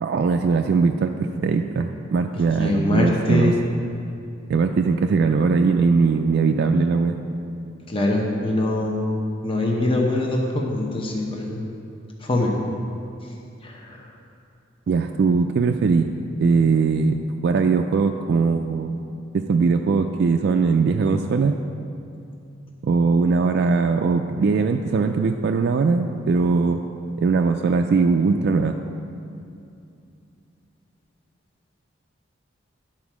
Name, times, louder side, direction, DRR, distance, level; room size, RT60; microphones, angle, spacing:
voice 1, 0.0-3.5 4.5-7.2 14.9-16.1 16.4-17.2 17.4-19.0 19.3-21.5 22.8-26.8 27.2-28.8, right 4 dB, 55° right, 5 dB, 0.3 m, -20 dB
voice 2, 2.6-3.6 7.9-9.0 9.4-11.6 12.2-12.5 13.6-14.0, left 2 dB, 25° left, -1 dB, 0.8 m, -23 dB
10.5 x 4.4 x 6.0 m, 2.6 s
head